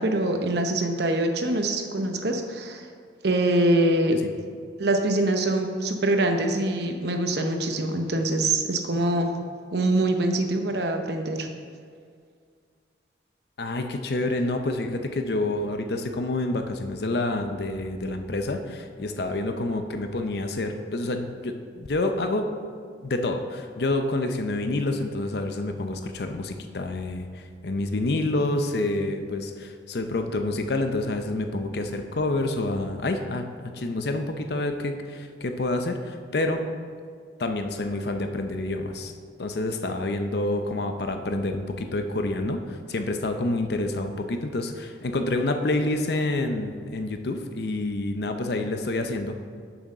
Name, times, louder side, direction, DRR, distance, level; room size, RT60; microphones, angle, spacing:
voice 1, 0.0-2.9 3.2-4.1 4.8-9.3 9.7-11.5, right 1 dB, 60° right, 4 dB, 0.8 m, -24 dB
voice 2, 13.6-22.5 23.0-27.3 27.6-33.4 33.7-36.6 37.4-39.1 39.4-49.4, left 2 dB, 60° left, 6 dB, 0.6 m, -28 dB
7.0 x 6.1 x 5.4 m, 2.1 s
head